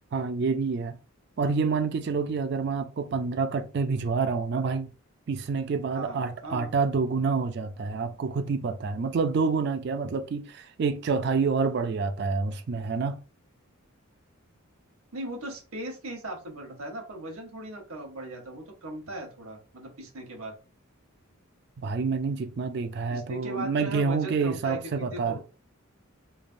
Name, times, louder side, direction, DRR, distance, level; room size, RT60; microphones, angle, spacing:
voice 1, 0.1-1.0 1.4-4.9 5.3-13.2 21.8-25.4, right 4 dB, 50° right, 0.3 m, -28 dB
voice 2, 5.9-6.7 15.1-20.5 23.1-25.4, right 1 dB, 75° right, 1.0 m, -38 dB
3.2 x 2.1 x 2.5 m
head